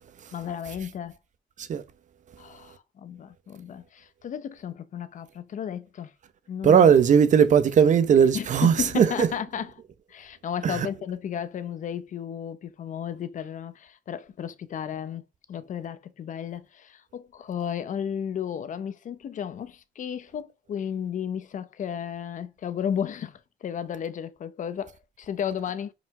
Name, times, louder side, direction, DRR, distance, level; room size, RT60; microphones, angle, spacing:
voice 1, 0.3-1.2 2.4-6.1 6.5-6.9 8.3-9.7 10.1-15.2 15.5-24.9 25.2-25.9, left 8 dB, 50° left, 0.8 m, -33 dB
voice 2, 6.6-9.3 10.6-10.9, right 7 dB, 50° right, 1.0 m, -18 dB
5.7 x 5.1 x 5.9 m
cardioid pair, 160°, 17 cm